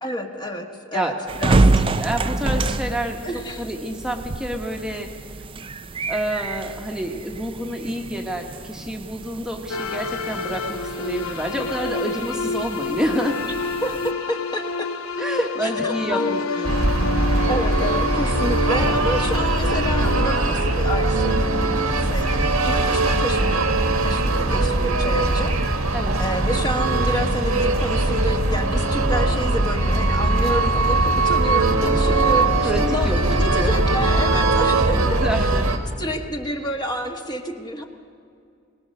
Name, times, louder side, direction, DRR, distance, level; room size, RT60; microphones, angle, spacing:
voice 1, 0.0-2.0 3.2-3.6 13.8-14.9 15.4-16.6 17.5-23.6 24.0-35.7 36.0-37.8, equal, 20° left, 3 dB, 1.3 m, -29 dB
voice 2, 0.9-3.2 3.6-5.1 6.1-13.4 15.2-16.7 24.4-24.7 25.9-26.2 32.6-33.7 34.8-35.7, equal, 5° right, 2 dB, 1.3 m, -28 dB
sound 1, 1.3-14.1, right 2 dB, 25° right, 0.5 m, -27 dB
sound 2, 9.7-21.5, left 3 dB, 75° left, 1.1 m, -28 dB
sound 3, 16.6-35.8, right 2 dB, 80° right, 1.7 m, -20 dB
21.5 x 20.0 x 6.5 m, 2.4 s
head